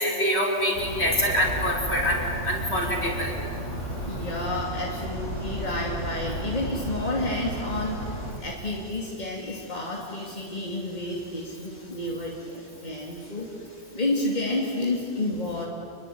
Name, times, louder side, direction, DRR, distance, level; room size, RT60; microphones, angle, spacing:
voice 1, 0.0-3.3, equal, 60° left, -2 dB, 5.9 m, -25 dB
sound 1, 0.7-8.3, right 1 dB, 85° left, 6.5 m, -33 dB
voice 2, 4.1-8.2 8.4-13.5 13.9-15.7, left 2 dB, 35° left, -2 dB, 3.0 m, -30 dB
28.5 x 21.5 x 9.5 m, 2.6 s
omnidirectional pair, 1.2 m